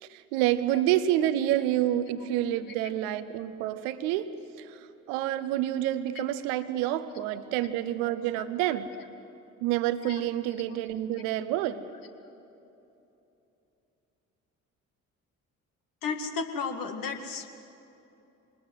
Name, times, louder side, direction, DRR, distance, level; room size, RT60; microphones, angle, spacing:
voice 1, 0.0-8.9 9.6-11.9, right 12 dB, 70° right, 13 dB, 1.1 m, -28 dB
voice 2, 16.0-17.5, left 5 dB, 55° left, 5 dB, 2.1 m, -34 dB
24.5 x 20.0 x 8.0 m, 2.9 s
figure-of-eight pair, 45°, 40 cm